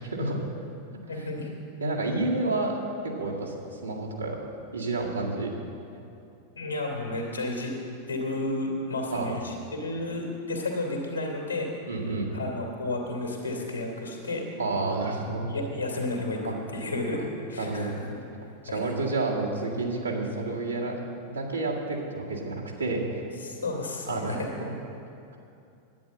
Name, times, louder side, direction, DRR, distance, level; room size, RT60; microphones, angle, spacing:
voice 1, 0.1-0.4 1.1-1.3 1.8-2.8 3.2-4.4 4.7-5.5 9.1-9.4 11.9-12.3 14.6-15.5 16.4-16.6 17.6-17.9 18.6-20.9 21.3-23.2 24.1-24.7, right 2 dB, 80° right, -4 dB, 2.0 m, -30 dB
voice 2, 1.1-1.5 6.6-7.7 8.1-11.7 12.3-14.4 15.5-16.4 16.7-17.2 17.5-18.2 18.7-18.8 23.4-24.5, left 2 dB, 80° left, 0 dB, 2.6 m, -32 dB
11.0 x 9.2 x 7.7 m, 2.6 s
figure-of-eight pair, 90°, 0 cm